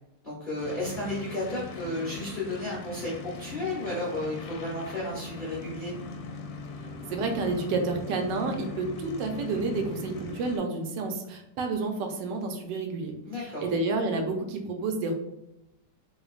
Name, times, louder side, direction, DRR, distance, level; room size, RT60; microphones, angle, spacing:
voice 1, 0.2-5.9 13.3-13.6, left 1 dB, 55° left, -7 dB, 0.5 m, -33 dB
sound 1, 0.6-10.6, left 4 dB, 85° left, 1.3 m, -41 dB
voice 2, 7.1-15.1, right 3 dB, 75° right, 4 dB, 1.2 m, -30 dB
3.1 x 2.8 x 2.4 m, 0.83 s
omnidirectional pair, 2.0 m